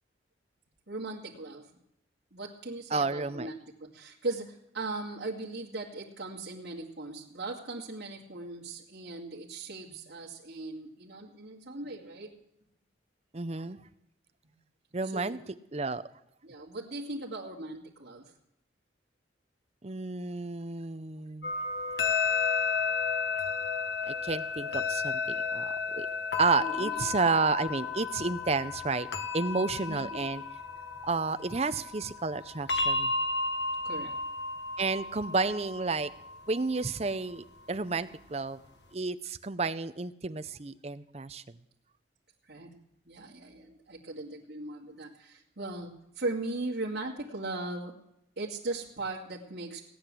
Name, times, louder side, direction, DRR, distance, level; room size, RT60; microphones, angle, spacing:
voice 1, 0.9-1.8 2.3-12.4 15.0-15.4 16.4-18.3 26.6-27.2 29.8-30.0 30.9-31.0 33.8-34.2 42.4-42.8 43.1-47.9 48.4-49.8, right 2 dB, 70° right, -4 dB, 2.3 m, -38 dB
voice 2, 2.9-3.5 13.3-13.8 14.9-15.4 15.7-16.0 19.8-21.5 24.1-26.1 26.4-29.1 29.3-30.4 31.0-33.1 34.8-36.1 36.5-38.6 38.9-41.4, right 4 dB, 35° right, 11 dB, 0.6 m, -31 dB
sound 1, 21.4-37.1, left 4 dB, 70° left, 1.5 m, -33 dB
18.0 x 9.9 x 7.6 m, 0.79 s
head